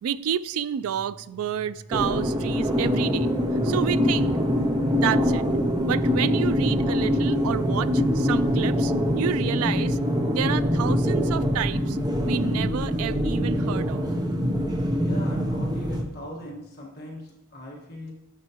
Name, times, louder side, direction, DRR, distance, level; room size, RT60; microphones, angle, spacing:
voice 1, 0.0-3.3 3.6-4.4 5.0-5.4 5.9-10.0 10.3-12.0 12.2-14.0, right 8 dB, 80° right, 0.3 m, -29 dB
sound 1, 0.8-16.5, equal, 30° left, 1.4 m, -49 dB
sound 2, 1.9-16.0, equal, 20° right, 0.7 m, -24 dB
sound 3, 5.8-13.7, right 2 dB, 40° right, 1.8 m, -39 dB
voice 2, 15.0-18.1, left 1 dB, 45° left, 1.5 m, -40 dB
10.5 x 6.8 x 2.9 m
head